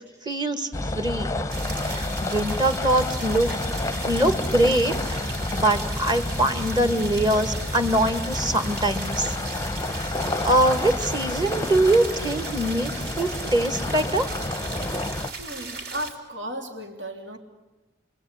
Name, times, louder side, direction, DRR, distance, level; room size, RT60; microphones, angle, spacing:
voice 1, 0.2-0.7 1.0-1.3 1.9-3.5 4.0-5.2 5.5-9.4 9.9-10.1 10.4-14.3, right 1 dB, 20° right, 8 dB, 1.6 m, -23 dB
sound 1, 0.7-15.3, left 2 dB, 15° left, 0.8 m, -30 dB
sound 2, 1.5-16.1, right 4 dB, 55° right, 3.5 m, -37 dB
voice 2, 15.4-17.4, right 1 dB, 70° right, 3 dB, 3.3 m, -35 dB
29.0 x 22.0 x 8.7 m, 1.1 s
head